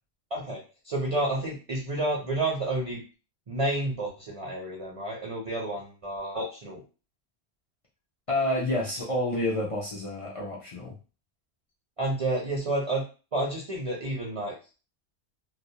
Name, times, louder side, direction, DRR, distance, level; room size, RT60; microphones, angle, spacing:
voice 1, 0.3-3.0 3.5-6.8 12.0-13.0 13.3-14.6, right 2 dB, 40° right, -2 dB, 0.5 m, -30 dB
voice 2, 8.3-11.0, left 1 dB, 50° left, -4 dB, 0.4 m, -29 dB
2.3 x 2.0 x 2.7 m, 0.33 s
omnidirectional pair, 1.1 m